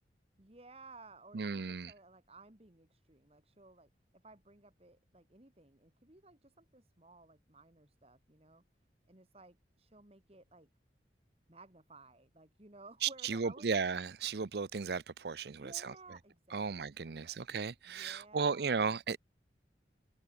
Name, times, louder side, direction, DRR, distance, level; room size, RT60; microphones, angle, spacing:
voice 1, 0.4-8.6 9.1-10.7 11.5-13.7 15.5-17.4 17.9-18.9, right 3 dB, 35° right, 2.0 m, -57 dB
voice 2, 1.3-1.9 13.0-15.9 16.5-19.2, right 5 dB, 60° right, 0.6 m, -35 dB
head